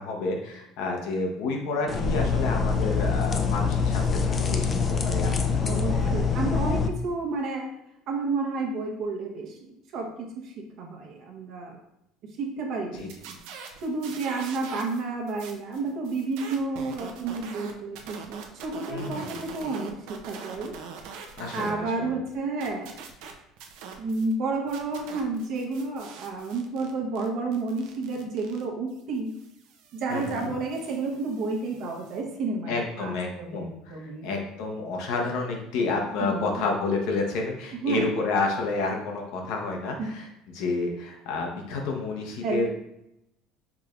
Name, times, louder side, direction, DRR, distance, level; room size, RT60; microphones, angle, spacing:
voice 1, 0.0-6.1 12.9-13.1 18.9-19.4 21.4-22.1 30.1-30.5 32.7-42.7, left 3 dB, 70° left, 1 dB, 0.8 m, -30 dB
sound 1, 1.9-6.9, left 5 dB, 25° left, 0.4 m, -25 dB
voice 2, 5.6-7.7 8.1-11.8 12.4-13.4 13.8-20.7 21.5-23.0 24.0-29.3 29.9-33.1 33.4-34.3 36.2-36.6 37.8-38.1 40.0-40.1 42.4-42.7, right 3 dB, 55° right, 0 dB, 0.9 m, -31 dB
sound 2, 12.9-15.0 15.3-21.7 22.0-24.3 24.7-32.2, right 6 dB, 75° right, 0.5 m, -44 dB
4.8 x 3.2 x 2.4 m, 0.82 s
cardioid pair, 150°, 0 cm